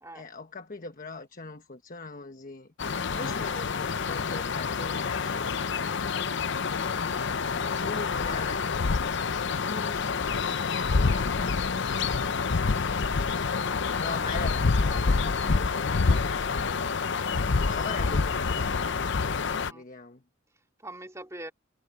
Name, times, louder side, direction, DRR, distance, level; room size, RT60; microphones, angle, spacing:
voice 1, 0.1-2.7 3.1-5.5 7.8-8.6 9.6-13.1 13.9-16.9 17.6-19.1 19.7-20.2, left 3 dB, 45° left, 1.2 m, -41 dB
sound 1, 2.8-19.7, left 4 dB, 60° left, 0.7 m, -27 dB
voice 2, 13.4-13.8 14.4-14.5 14.8-15.0 18.0-18.1 19.6-19.8 20.8-21.5, right 1 dB, 15° right, 2.5 m, -43 dB
head